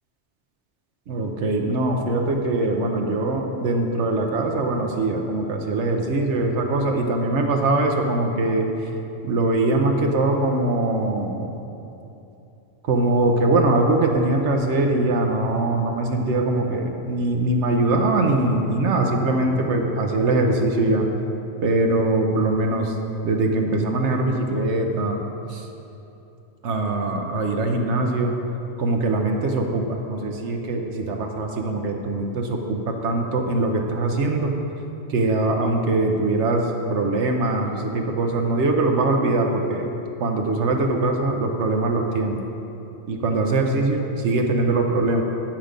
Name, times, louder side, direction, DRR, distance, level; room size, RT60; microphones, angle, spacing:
voice 1, 1.1-8.7 9.2-11.5 12.8-21.1 21.6-22.9 23.2-25.2 25.5-25.6 26.6-28.3 28.8-34.5 35.1-39.9 40.2-42.4 43.1-45.2, right 2 dB, 80° right, 2 dB, 1.1 m, -22 dB
9.3 x 7.4 x 5.0 m, 2.9 s
omnidirectional pair, 1.2 m